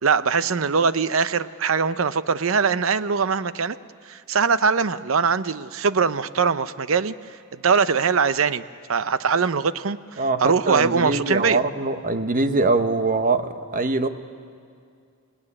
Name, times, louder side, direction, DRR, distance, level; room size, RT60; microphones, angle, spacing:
voice 1, 0.0-3.8 4.1-7.1 7.5-8.6 8.9-11.6, right 5 dB, 70° right, 14 dB, 0.7 m, -22 dB
voice 2, 10.2-14.1, right 3 dB, 40° right, 9 dB, 1.1 m, -23 dB
26.5 x 17.5 x 9.9 m, 2.3 s
head